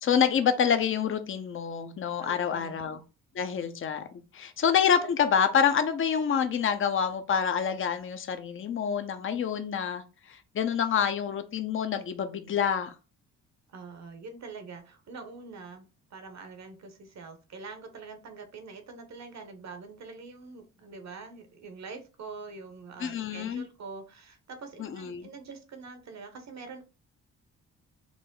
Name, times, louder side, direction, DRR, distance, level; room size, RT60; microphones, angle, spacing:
voice 1, 0.0-3.0 3.3-4.0 4.3-10.0 10.3-12.9 23.0-23.6 24.8-25.3, left 7 dB, 40° left, 0.7 m, -27 dB
voice 2, 2.2-2.8 13.7-26.8, right 4 dB, 55° right, 1.1 m, -45 dB
4.8 x 2.0 x 3.8 m
supercardioid pair, 70°, 33 cm